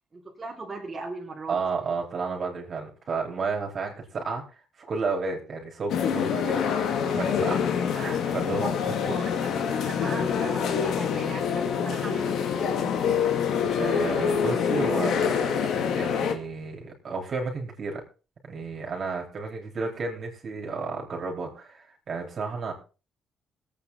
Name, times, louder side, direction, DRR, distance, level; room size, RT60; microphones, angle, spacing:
voice 1, 0.1-1.6 8.8-12.8, right 3 dB, 30° right, -2 dB, 3.7 m, -39 dB
voice 2, 1.5-4.4 4.8-7.6 7.9-9.2 13.7-18.0 18.4-22.7, right 4 dB, 50° right, 1 dB, 4.1 m, -32 dB
sound 1, 5.9-16.3, left 7 dB, 75° left, 2.0 m, -26 dB
20.0 x 8.8 x 4.1 m, 0.34 s
cardioid pair, 90°, 0 cm